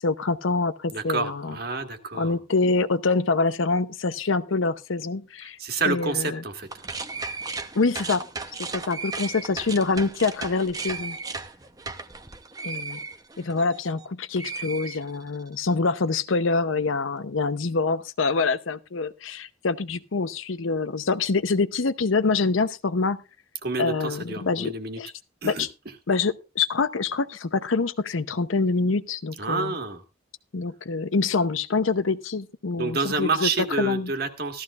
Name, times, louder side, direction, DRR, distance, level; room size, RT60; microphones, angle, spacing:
voice 1, 0.0-1.6 2.1-5.6 5.8-6.4 7.7-8.2 8.6-11.2 12.6-13.0 13.4-23.2 23.8-25.1 25.4-25.7 26.1-29.8 30.5-34.1, left 4 dB, 80° left, 0.7 m, -25 dB
voice 2, 0.9-2.4 5.6-6.7 23.6-25.0 25.4-26.0 29.4-30.0 32.8-34.6, right 4 dB, 50° right, 1.7 m, -28 dB
sound 1, 6.6-14.1 14.4-15.5, right 4 dB, 20° right, 0.8 m, -35 dB
15.5 x 13.5 x 2.4 m
head